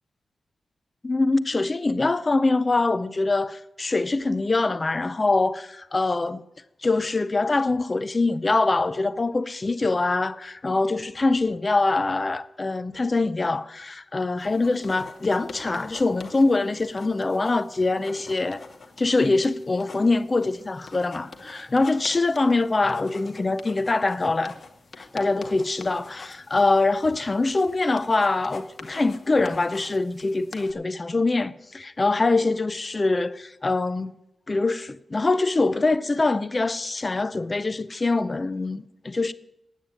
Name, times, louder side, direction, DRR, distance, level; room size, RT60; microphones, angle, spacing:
voice 1, 1.0-6.4 6.8-18.6 19.0-24.5 25.0-34.1 34.5-39.3, left 3 dB, 35° left, 0.5 m, -24 dB
sound 1, 14.4-30.7, left 4 dB, 55° left, 1.5 m, -45 dB
9.2 x 8.9 x 9.0 m
cardioid pair, 55°, 0 cm